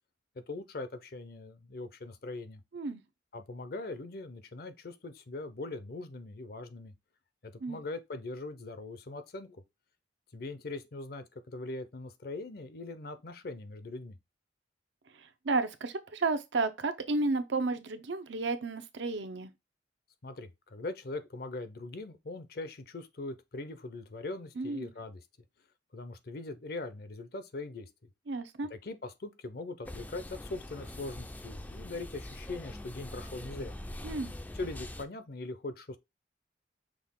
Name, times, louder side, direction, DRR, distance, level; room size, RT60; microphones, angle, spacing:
voice 1, 0.5-2.6 3.3-6.9 7.4-9.6 10.3-14.2 20.2-25.2 25.9-28.1 28.7-33.7 34.5-36.0, left 2 dB, 55° left, 0.6 m, -41 dB
voice 2, 15.2-19.5 24.6-24.9 28.3-28.7 34.0-34.3, right 3 dB, 80° right, 0.7 m, -32 dB
sound 1, 29.8-35.0, left 1 dB, 10° left, 0.3 m, -43 dB
6.1 x 2.4 x 3.6 m
head